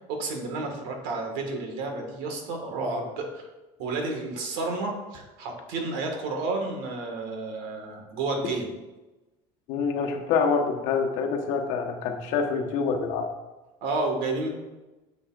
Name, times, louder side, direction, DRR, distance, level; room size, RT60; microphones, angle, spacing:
voice 1, 0.1-3.5 3.8-8.7 13.8-14.5, right 3 dB, 80° right, 3 dB, 1.8 m, -31 dB
voice 2, 9.7-13.3, left 5 dB, 70° left, 2 dB, 1.2 m, -26 dB
9.6 x 7.0 x 2.5 m, 1.1 s
cardioid pair, 165°, 14 cm